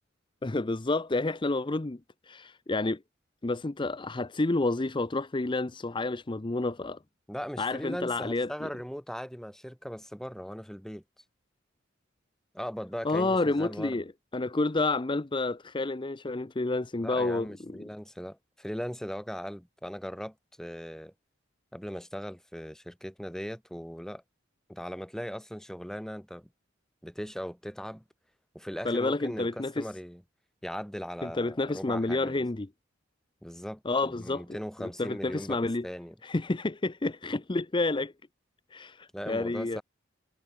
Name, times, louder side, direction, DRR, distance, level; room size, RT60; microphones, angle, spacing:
voice 1, 0.4-3.0 3.4-7.0 7.6-8.7 13.0-17.9 28.8-29.9 31.2-32.7 33.8-35.9 36.2-38.1 38.7-39.8, left 2 dB, 25° left, 0.6 m, -30 dB
voice 2, 7.3-11.0 12.5-14.0 17.0-21.1 21.7-24.2 24.7-26.5 27.0-28.0 28.5-30.2 30.6-32.4 33.4-35.6 35.8-36.1 39.1-39.8, equal, 5° left, 3.9 m, -39 dB
head